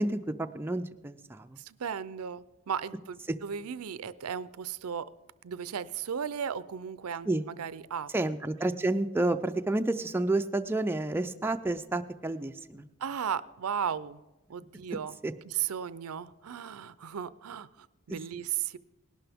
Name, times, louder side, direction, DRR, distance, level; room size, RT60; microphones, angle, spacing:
voice 1, 0.0-1.6 7.3-7.4 8.1-12.9 15.2-15.3 18.1-18.2, right 2 dB, 10° right, 7 dB, 0.3 m, -30 dB
voice 2, 1.6-5.1 5.4-8.1 13.0-14.2 14.5-15.1 15.4-18.8, right 8 dB, 85° right, 16 dB, 0.5 m, -35 dB
19.0 x 11.5 x 3.5 m, 1.1 s
head